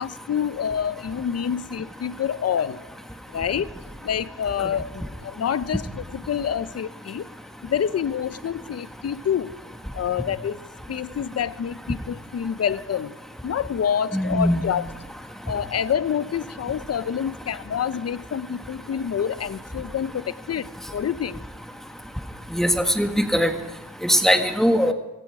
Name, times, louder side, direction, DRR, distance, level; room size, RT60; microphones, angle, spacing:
voice 1, 0.0-2.8 3.3-3.7 4.0-7.2 7.6-9.5 9.9-10.6 10.9-13.1 13.4-14.8 15.5-21.4, left 8 dB, 40° left, 15 dB, 0.6 m, -27 dB
voice 2, 14.1-14.6 22.5-23.5 24.0-24.9, equal, ahead, 5 dB, 1.6 m, -20 dB
17.5 x 15.0 x 4.9 m, 1.1 s
cardioid pair, 100°, 38 cm